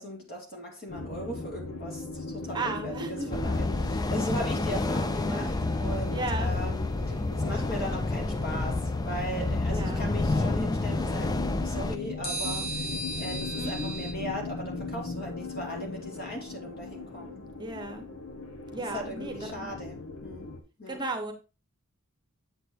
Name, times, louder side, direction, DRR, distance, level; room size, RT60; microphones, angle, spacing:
voice 1, 0.0-17.4 18.8-20.5 20.8-21.0, equal, 45° left, 0 dB, 2.7 m, -38 dB
sound 1, 0.9-20.6, left 3 dB, 85° left, 1.5 m, -39 dB
voice 2, 2.5-3.3 6.1-6.5 9.7-10.0 13.6-13.9 17.6-18.1 18.7-19.7 20.9-21.3, right 2 dB, 20° right, 5 dB, 0.9 m, -35 dB
sound 2, 3.3-12.0, left 2 dB, 20° left, 0.4 m, -29 dB
sound 3, 4.6-5.8 12.2-14.1, right 2 dB, 65° left, 1.8 m, -37 dB
8.4 x 7.7 x 2.8 m, 0.30 s
head